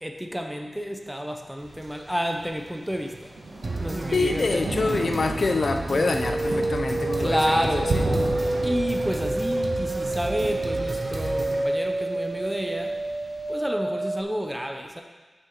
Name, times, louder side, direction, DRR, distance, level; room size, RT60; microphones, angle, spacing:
voice 1, 0.0-3.3 3.8-5.2 7.2-8.0 8.6-12.9 13.5-15.0, equal, 5° right, 3 dB, 0.7 m, -30 dB
Thunder, 1.6-13.5, right 2 dB, 90° right, 1.5 m, -35 dB
sound 1, 3.6-11.6, right 2 dB, 50° right, 0.9 m, -33 dB
voice 2, 4.1-7.8, left 3 dB, 65° left, 6 dB, 0.5 m, -26 dB
sound 2, 5.9-14.2, right 2 dB, 35° right, 0.4 m, -28 dB
6.1 x 5.9 x 4.7 m, 1.4 s
wide cardioid pair, 60°, 0 cm